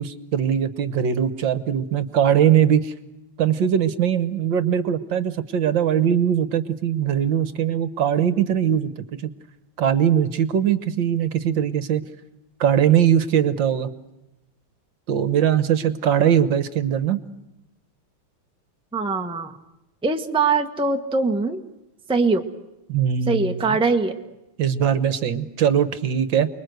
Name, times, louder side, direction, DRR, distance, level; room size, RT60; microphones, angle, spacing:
voice 1, 0.0-2.9 3.4-8.9 9.2-9.3 9.8-12.0 12.6-13.9 15.1-17.2 22.9-23.8 24.6-26.5, right 9 dB, 65° right, 12 dB, 1.8 m, -21 dB
voice 2, 18.9-19.6 20.0-21.6 22.1-22.5 23.3-24.2, right 4 dB, 5° right, 4 dB, 1.1 m, -22 dB
30.0 x 21.5 x 8.0 m, 0.93 s
omnidirectional pair, 2.3 m